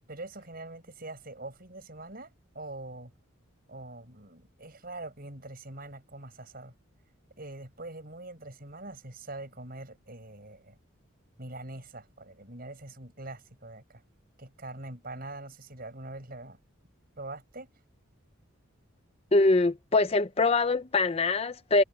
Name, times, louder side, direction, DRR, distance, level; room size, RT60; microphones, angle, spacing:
voice 1, 0.1-3.1 3.7-6.7 7.4-10.8 11.4-14.0 14.4-16.6 17.2-17.7, right 2 dB, 45° right, 6.4 m, -43 dB
voice 2, 19.3-21.8, left 3 dB, 30° left, 0.5 m, -23 dB
head